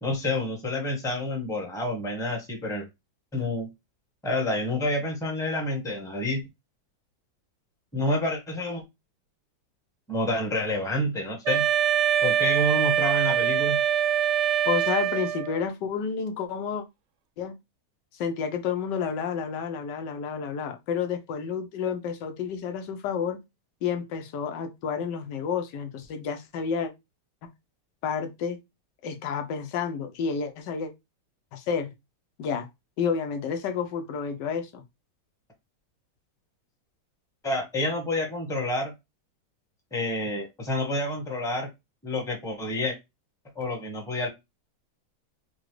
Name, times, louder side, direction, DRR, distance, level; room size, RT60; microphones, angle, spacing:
voice 1, 0.0-2.9 3.3-3.7 4.2-6.4 7.9-8.8 10.1-11.7 12.2-13.8 37.4-38.9 39.9-41.7 42.0-42.9 43.5-44.3, left 1 dB, ahead, 0.9 m, -28 dB
Wind instrument woodwind instrument, 11.4-15.6, right 10 dB, 80° right, 0.6 m, -24 dB
voice 2, 14.7-16.8 17.4-17.5 18.1-23.4 23.8-26.9 28.0-28.6 29.0-30.9 31.5-31.9 32.4-32.7 33.0-34.8, left 6 dB, 85° left, 1.3 m, -30 dB
4.8 x 2.2 x 3.1 m
omnidirectional pair, 1.8 m